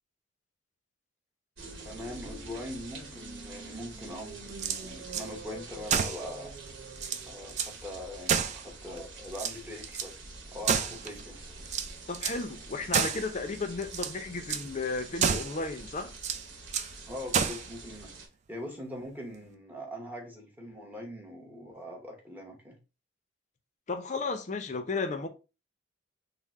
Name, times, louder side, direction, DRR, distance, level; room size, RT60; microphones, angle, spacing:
sound 1, 1.6-18.3, right 2 dB, 80° right, 1.0 m, -46 dB
voice 1, 1.8-6.5 7.3-10.2 10.5-11.4 17.1-18.1 18.5-22.8, left 1 dB, 10° right, 0.8 m, -42 dB
sound 2, 4.5-5.3 5.9-6.3 6.7-6.8 7.0-7.8 8.3-9.0 9.3-10.1 10.6-11.2 11.7-12.4 12.9-13.3 13.8-14.2 14.5-14.7 15.2-15.6 16.2-16.9 17.3-17.7, right 7 dB, 35° right, 0.3 m, -30 dB
voice 2, 12.1-16.1 23.9-25.3, left 3 dB, 35° left, 0.5 m, -34 dB
3.6 x 2.0 x 4.1 m
head